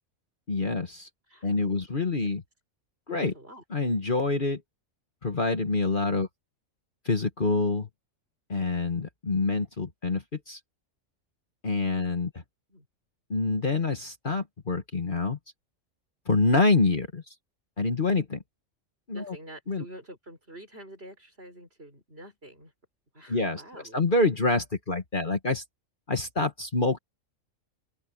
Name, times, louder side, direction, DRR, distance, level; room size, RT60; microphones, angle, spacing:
voice 1, 0.5-1.1 1.4-2.4 3.1-3.3 3.7-4.6 5.2-6.3 7.0-7.9 8.5-10.6 11.6-12.3 13.3-15.4 16.3-17.2 17.8-18.4 19.1-19.4 19.7-19.8 23.3-23.6 23.9-25.6 26.1-27.0, left 3 dB, 40° left, 1.7 m, -26 dB
voice 2, 1.3-2.3 3.3-3.6 12.7-12.9 19.1-22.7 23.1-24.0, right 1 dB, 45° right, 6.6 m, -48 dB
open air
omnidirectional pair, 1.4 m